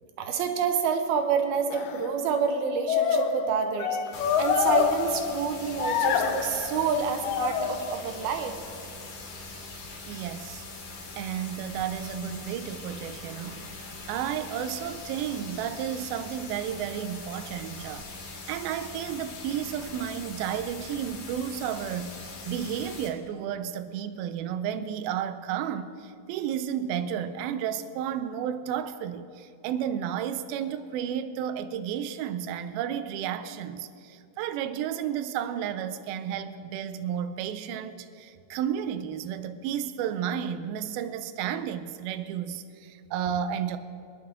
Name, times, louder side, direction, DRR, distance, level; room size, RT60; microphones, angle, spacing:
voice 1, 0.2-4.0 4.4-8.5, right 6 dB, 75° right, 6 dB, 2.6 m, -28 dB
sound 1, 1.7-2.1 2.9-5.5 5.8-6.8 7.2-8.1, left 7 dB, 85° left, 1.9 m, -27 dB
sound 2, 4.1-23.1, left 3 dB, 55° left, 3.1 m, -42 dB
voice 2, 10.1-10.6 11.2-13.7 14.1-22.2 22.5-43.8, right 9 dB, 90° right, 10 dB, 2.1 m, -32 dB
24.5 x 10.0 x 3.6 m, 2.4 s
omnidirectional pair, 5.0 m